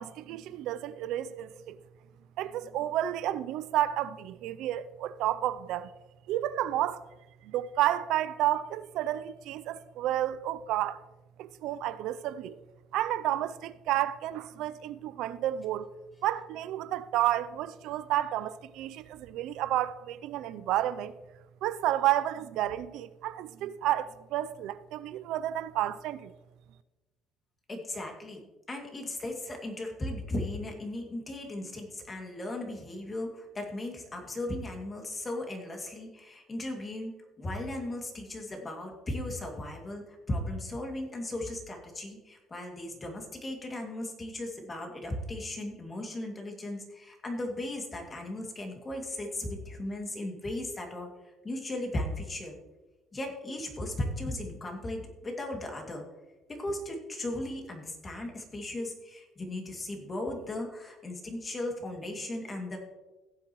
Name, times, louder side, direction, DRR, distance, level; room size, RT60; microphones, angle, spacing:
voice 1, 0.0-1.8 2.4-5.9 6.3-7.0 7.4-11.0 11.4-12.6 12.9-15.9 16.2-21.1 21.6-26.3, right 13 dB, 75° right, 0.5 m, -31 dB
voice 2, 27.7-37.1 37.4-52.6 53.1-56.0 56.6-62.8, left 1 dB, 25° left, 2.4 m, -37 dB
17.0 x 7.7 x 3.1 m
cardioid pair, 115°, 0 cm